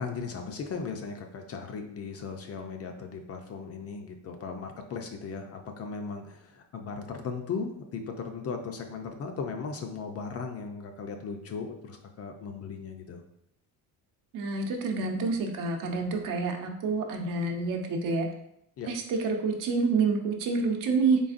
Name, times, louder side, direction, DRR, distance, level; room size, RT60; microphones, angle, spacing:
voice 1, 0.0-13.2 18.8-18.9, left 5 dB, 40° left, 5 dB, 0.5 m, -37 dB
voice 2, 14.3-18.3 18.9-21.2, right 4 dB, 60° right, 3 dB, 0.7 m, -28 dB
3.9 x 3.4 x 2.5 m, 0.73 s
cardioid pair, 130°, 37 cm